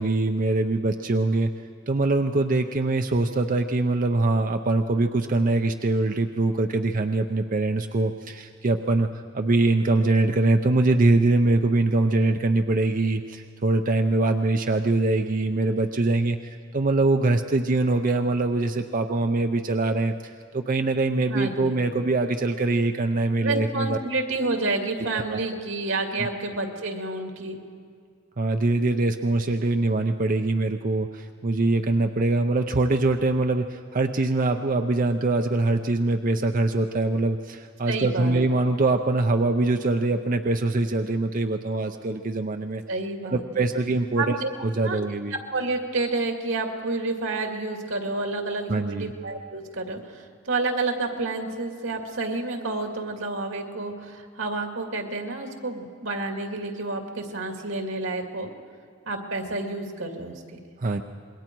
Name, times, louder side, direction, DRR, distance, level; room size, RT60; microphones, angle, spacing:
voice 1, 0.0-1.5 1.9-24.0 25.1-25.5 26.2-26.3 28.4-42.8 43.3-45.4 48.7-49.1 60.8-61.0, right 2 dB, 45° right, 6 dB, 0.6 m, -23 dB
voice 2, 21.3-21.8 23.4-27.6 37.9-38.3 42.9-43.6 44.2-44.5 44.8-45.0 45.5-58.5 59.1-60.7, right 3 dB, 85° right, 3 dB, 2.3 m, -29 dB
26.5 x 21.5 x 4.6 m, 2.2 s
head